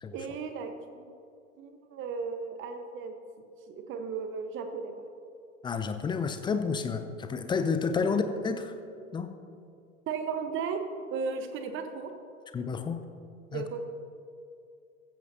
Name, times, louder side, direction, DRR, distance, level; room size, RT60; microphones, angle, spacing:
voice 1, 0.1-1.2 1.6-3.1 3.7-4.9 10.1-10.8 11.1-12.1 13.5-13.8, right 5 dB, 30° right, 7 dB, 1.2 m, -35 dB
voice 2, 5.6-8.7 9.1-9.4 12.5-13.0 13.5-13.7, left 5 dB, 10° left, 9 dB, 0.6 m, -30 dB
15.0 x 14.5 x 2.8 m, 2.4 s
figure-of-eight pair, 90°, 41 cm